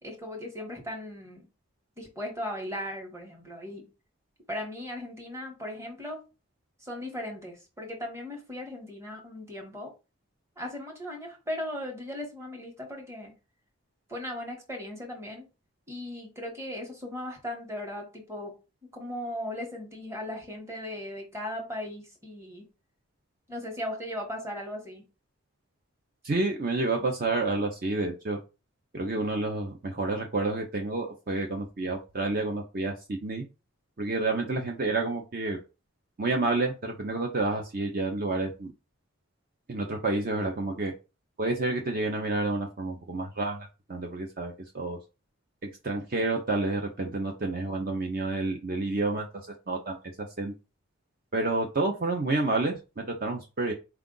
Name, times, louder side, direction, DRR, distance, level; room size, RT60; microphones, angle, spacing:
voice 1, 0.0-1.4 2.0-3.9 4.5-6.2 6.8-9.9 10.6-13.3 14.1-15.5 15.9-18.5 18.9-22.6 23.5-25.0, left 1 dB, 15° right, 1.1 m, -37 dB
voice 2, 26.2-28.4 28.9-33.4 34.0-35.6 36.2-38.7 39.7-40.9 41.4-45.0 45.6-49.3 49.7-50.5 51.3-53.7, right 2 dB, 45° right, 0.6 m, -29 dB
4.5 x 2.4 x 3.8 m
head